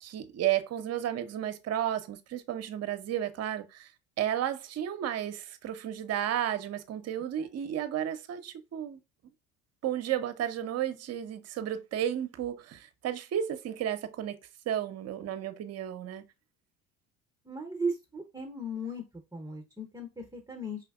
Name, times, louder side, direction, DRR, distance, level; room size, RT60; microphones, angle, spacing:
voice 1, 0.0-3.9 4.2-9.0 9.8-14.4 14.7-16.2, right 10 dB, 35° right, 0.8 m, -33 dB
voice 2, 17.4-19.0 19.3-20.8, right 1 dB, 10° right, 0.9 m, -36 dB
4.9 x 3.5 x 2.4 m
hypercardioid pair, 70°, 41 cm